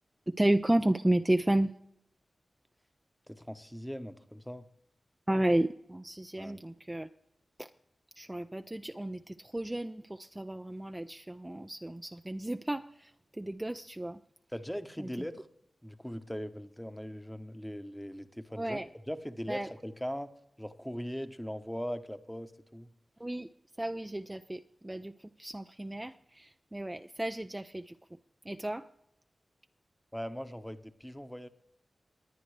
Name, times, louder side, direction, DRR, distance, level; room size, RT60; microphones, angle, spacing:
voice 1, 0.3-1.7 5.3-7.1 7.6-7.7 8.2-14.2 15.0-15.3 18.6-18.9 19.5-19.7 23.2-23.5 23.8-28.0 28.4-28.9, right 1 dB, 20° right, 8 dB, 0.4 m, -32 dB
voice 2, 3.3-4.7 6.4-6.6 14.5-15.5 15.8-18.8 19.1-20.3 20.6-22.9 30.1-31.5, equal, 5° left, 9 dB, 0.9 m, -40 dB
20.5 x 9.2 x 3.3 m, 0.77 s
cardioid pair, 50°, 0 cm